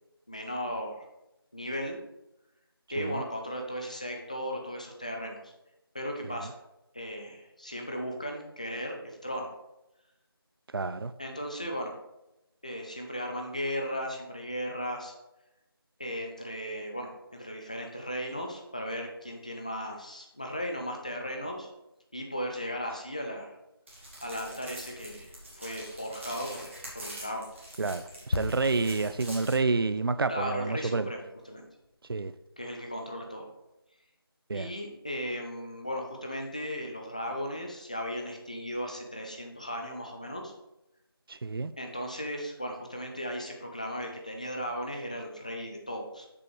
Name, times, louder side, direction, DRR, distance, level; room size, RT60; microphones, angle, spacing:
voice 1, 0.3-0.9 1.5-2.0 2.9-5.5 5.9-6.5 6.9-9.5 11.2-11.9 12.6-15.1 16.0-21.7 22.1-23.6 24.2-27.5 30.3-31.6 32.6-33.5 34.5-40.5 41.8-46.3, equal, 15° left, 2 dB, 0.5 m, -36 dB
voice 2, 10.7-11.1 27.8-31.1 32.1-32.3 34.5-34.7 41.3-41.7, right 3 dB, 65° right, 13 dB, 0.4 m, -29 dB
sound 1, 23.9-29.5, right 1 dB, 30° right, 2.1 m, -45 dB
sound 2, 28.3-32.0 32.2-32.4, left 3 dB, 80° left, 0.5 m, -38 dB
6.9 x 5.0 x 4.6 m, 0.93 s
figure-of-eight pair, 175°, 13 cm